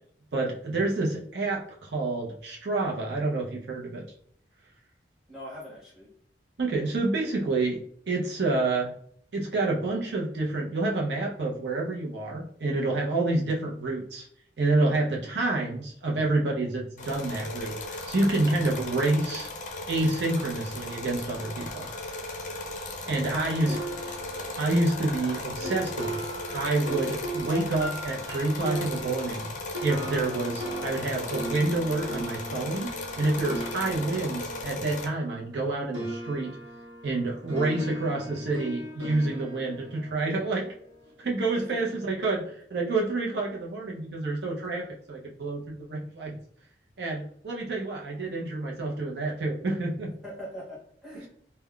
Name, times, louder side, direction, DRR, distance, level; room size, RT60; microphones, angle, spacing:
voice 1, 0.3-4.0 6.6-7.8 8.1-8.9 9.3-14.3 14.6-19.5 19.9-22.2 23.1-23.8 24.6-26.3 26.5-29.5 29.8-32.9 33.2-36.5 37.0-40.7 41.2-46.4 47.0-50.1 51.1-51.3, right 2 dB, 70° right, -1 dB, 0.6 m, -28 dB
voice 2, 5.3-6.1 23.0-23.8 41.5-41.6 50.2-51.3, equal, 5° right, -7 dB, 1.3 m, -42 dB
sound 1, 17.0-35.1, left 2 dB, 45° left, 0.4 m, -37 dB
sound 2, 23.7-35.6 35.9-41.2, right 1 dB, 90° right, 1.0 m, -38 dB
3.6 x 2.1 x 2.2 m, 0.62 s
head